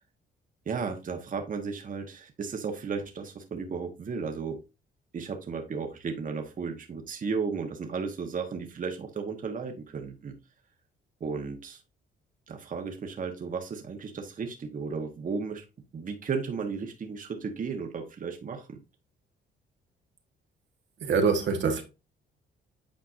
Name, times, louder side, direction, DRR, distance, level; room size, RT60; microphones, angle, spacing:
voice 1, 0.6-4.6 5.1-10.4 11.2-11.8 12.5-15.6 15.9-18.8, right 5 dB, 45° right, 1.3 m, -34 dB
voice 2, 21.0-21.8, right 5 dB, 65° right, 1.4 m, -24 dB
8.8 x 4.5 x 2.6 m
cardioid pair, 90°, 20 cm